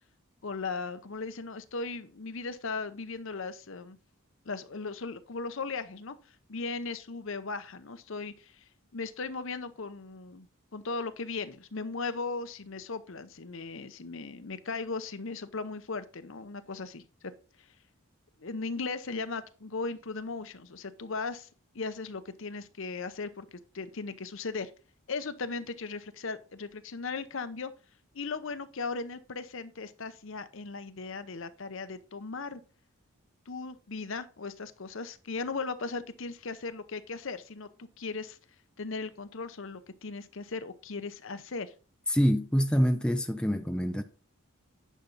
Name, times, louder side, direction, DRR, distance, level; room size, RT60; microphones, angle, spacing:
voice 1, 0.4-4.0 4.4-6.2 6.5-8.6 8.9-10.5 10.7-17.3 17.6-17.7 18.4-21.5 21.7-23.5 23.7-24.7 25.1-27.7 28.1-32.6 33.5-38.4 38.8-41.7, left 4 dB, 65° left, 0.7 m, -37 dB
voice 2, 42.1-44.0, equal, 5° left, 0.5 m, -26 dB
10.0 x 5.7 x 4.0 m
head